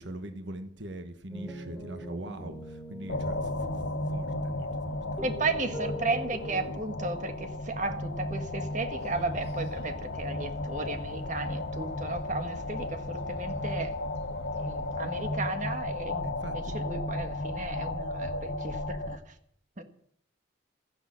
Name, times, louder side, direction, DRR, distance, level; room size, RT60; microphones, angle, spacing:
voice 1, 0.0-3.7 4.1-5.5 16.2-16.8, right 1 dB, 70° right, 8 dB, 1.3 m, -42 dB
sound 1, 1.3-4.7 5.2-6.7, left 1 dB, ahead, 3.1 m, -42 dB
sound 2, 3.1-19.2, left 2 dB, 80° left, 1.3 m, -34 dB
voice 2, 5.2-13.9 14.6-19.2 19.8-19.9, right 3 dB, 40° right, 7 dB, 1.6 m, -34 dB
sound 3, 9.0-15.5, equal, 60° left, 2.3 m, -48 dB
14.0 x 10.5 x 7.5 m, 0.65 s
head